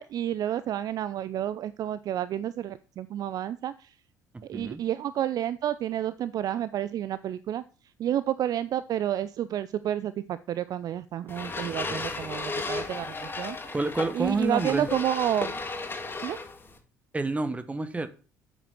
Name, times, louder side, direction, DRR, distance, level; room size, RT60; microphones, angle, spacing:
voice 1, 0.0-3.9 4.5-7.6 8.0-13.7 14.1-15.6 16.2-16.4, right 11 dB, 45° right, 16 dB, 0.5 m, -30 dB
sound 1, 11.3-16.8, left 3 dB, 25° left, 2.2 m, -35 dB
voice 2, 13.7-14.9 17.1-18.1, right 2 dB, 15° right, 11 dB, 1.3 m, -29 dB
8.7 x 8.0 x 4.5 m, 0.36 s
figure-of-eight pair, 55°, 9 cm